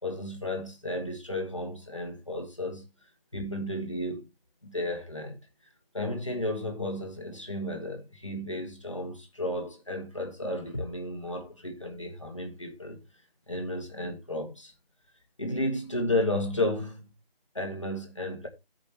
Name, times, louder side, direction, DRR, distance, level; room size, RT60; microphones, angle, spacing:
voice 1, 0.0-2.8 3.3-4.3 4.6-5.4 5.9-13.0 13.5-14.7 15.4-17.1 17.5-18.5, left 1 dB, 30° left, 1.4 m, -33 dB
15.5 x 5.2 x 2.9 m
figure-of-eight pair, 170°, 30 cm